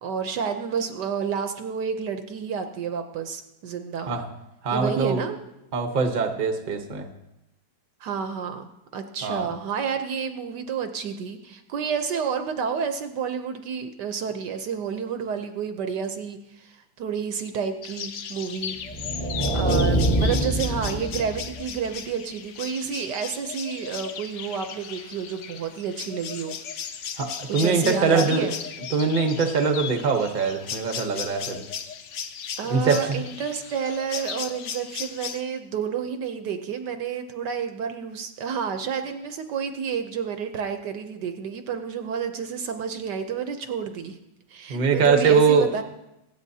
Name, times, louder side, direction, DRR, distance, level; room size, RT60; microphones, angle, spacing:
voice 1, 0.0-4.1 4.7-5.4 8.0-18.8 19.5-26.6 27.5-28.6 32.6-44.2 44.5-45.8, right 6 dB, 70° right, 7 dB, 1.3 m, -30 dB
voice 2, 4.6-5.2 5.7-7.1 9.2-9.4 27.2-28.5 28.9-31.6 32.7-33.2 44.7-45.7, right 5 dB, 35° right, 5 dB, 0.9 m, -22 dB
sound 1, 17.8-35.4, left 7 dB, 80° left, 0.6 m, -36 dB
sound 2, 18.8-21.8, right 1 dB, 10° left, 1.2 m, -24 dB
25.0 x 8.4 x 2.7 m, 0.92 s
omnidirectional pair, 2.1 m